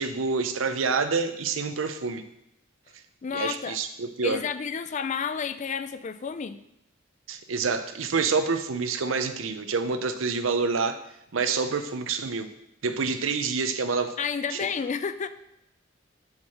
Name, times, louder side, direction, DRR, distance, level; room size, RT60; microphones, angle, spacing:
voice 1, 0.0-2.2 3.3-4.4 7.3-11.0 11.3-12.5 12.8-14.1 14.5-14.6, right 4 dB, 85° right, 9 dB, 0.6 m, -27 dB
voice 2, 3.2-3.8 4.2-6.6 14.2-15.3, left 6 dB, 40° left, 12 dB, 0.4 m, -30 dB
5.6 x 4.8 x 6.4 m, 0.82 s
head